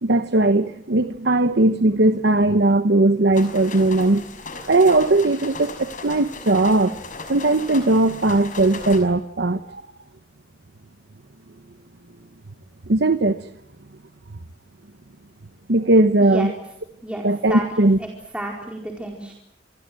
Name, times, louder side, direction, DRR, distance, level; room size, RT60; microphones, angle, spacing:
voice 1, 0.0-4.2 4.7-7.0 7.3-9.8 12.9-13.5 15.7-16.5 17.2-18.0, right 2 dB, 65° right, 1.1 m, -18 dB
sound 1, 3.3-9.0, left 3 dB, 45° left, 5.7 m, -37 dB
voice 2, 16.2-16.5 17.0-18.1 18.3-19.3, right 1 dB, 5° right, 4.4 m, -31 dB
28.5 x 23.5 x 7.7 m
head